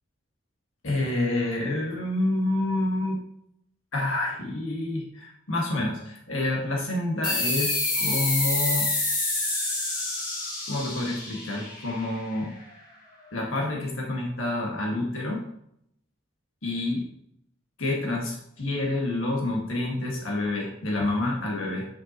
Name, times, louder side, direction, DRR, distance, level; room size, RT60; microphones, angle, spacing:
voice 1, 0.8-3.2 3.9-8.9 10.7-12.6 13.3-15.4 16.6-17.0 17.8-21.9, left 2 dB, 80° left, -1 dB, 1.9 m, -28 dB
sound 1, 7.2-12.4, left 2 dB, 40° left, 2.1 m, -27 dB
7.7 x 6.0 x 3.0 m, 0.73 s
head